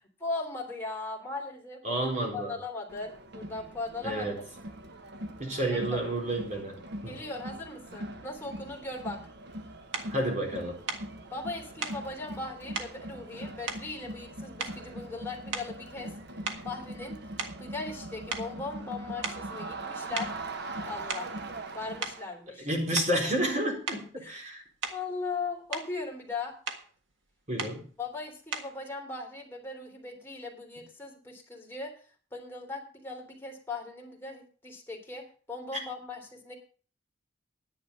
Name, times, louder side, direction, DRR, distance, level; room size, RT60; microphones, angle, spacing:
voice 1, 0.2-4.4 5.7-6.0 7.0-9.2 11.3-16.1 16.6-17.2 17.6-20.3 20.8-21.3 21.7-22.7 24.2-24.4 24.9-26.5 28.0-31.9 32.3-36.5, left 3 dB, 10° left, 0 dB, 3.4 m, -38 dB
voice 2, 1.8-2.6 4.0-4.4 5.4-7.2 10.1-10.8 22.6-24.6 27.5-27.9, right 1 dB, 40° right, 1 dB, 4.2 m, -30 dB
Crowd, 2.9-22.3, right 1 dB, 60° right, 1.3 m, -41 dB
sound 1, 9.9-10.1 10.9-11.1 11.8-12.0 12.7-13.0 13.7-14.3 14.6-15.0 15.5-15.9 16.4-18.0 18.3-18.5 19.2-19.5 20.2-20.4 20.9-21.4 22.0-22.2 23.0-23.2 23.9-24.1 24.8-25.1 25.5-25.9 26.7-26.9 27.6-27.8 28.5-28.8, right 5 dB, 75° right, 1.7 m, -37 dB
10.5 x 10.0 x 5.6 m, 0.39 s
head